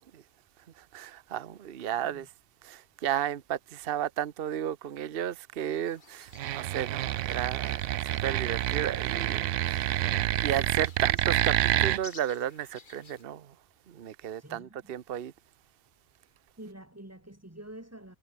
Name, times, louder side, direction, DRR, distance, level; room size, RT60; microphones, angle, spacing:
voice 1, 0.8-2.3 2.6-13.5 13.9-15.3, right 10 dB, 55° right, 1.0 m, -34 dB
sound 1, 5.8-13.2, left 4 dB, 40° left, 1.8 m, -55 dB
sound 2, 6.3-12.0, right 13 dB, 90° right, 0.9 m, -28 dB
voice 2, 14.4-14.9 16.2-18.2, right 1 dB, 10° right, 2.1 m, -48 dB
omnidirectional pair, 1.2 m